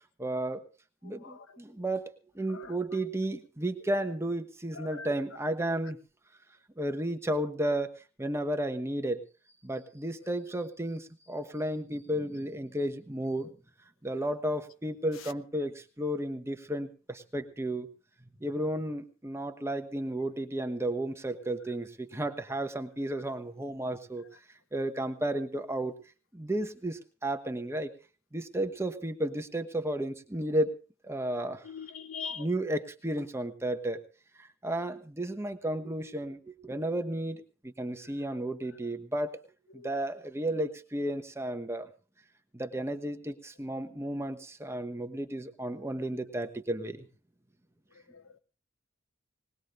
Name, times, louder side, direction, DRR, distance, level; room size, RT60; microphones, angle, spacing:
voice 1, 0.2-0.6 1.0-6.0 6.8-9.2 9.6-13.5 14.0-17.9 18.4-24.2 24.7-25.9 26.3-27.9 28.3-30.8 31.0-31.6 32.3-34.0 34.4-39.4 39.7-41.9 42.5-47.1, right 1 dB, 15° right, 1.2 m, -33 dB
voice 2, 4.8-5.1 31.6-32.4 48.1-48.4, left 6 dB, 75° left, 0.9 m, -41 dB
20.5 x 19.5 x 2.5 m
head